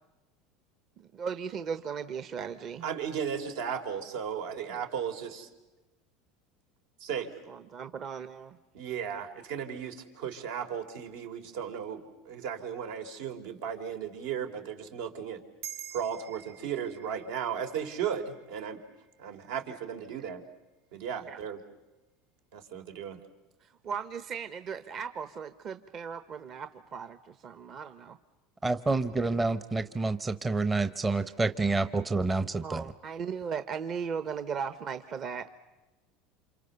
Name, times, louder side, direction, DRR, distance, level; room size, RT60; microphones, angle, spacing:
voice 1, 1.0-2.8 7.5-8.6 21.3-21.4 23.6-28.2 32.6-35.5, right 6 dB, 35° right, 10 dB, 1.0 m, -37 dB
voice 2, 2.8-5.5 7.0-7.3 8.7-15.4 15.9-18.8 19.2-20.4 20.9-21.6 22.5-23.2, right 8 dB, 75° right, 5 dB, 3.7 m, -35 dB
sound 1, 15.6-20.3, right 10 dB, 55° right, 1.6 m, -48 dB
voice 3, 28.6-32.9, right 3 dB, 15° right, 11 dB, 0.8 m, -28 dB
29.5 x 27.5 x 6.9 m, 1.1 s
supercardioid pair, 140°, 0 cm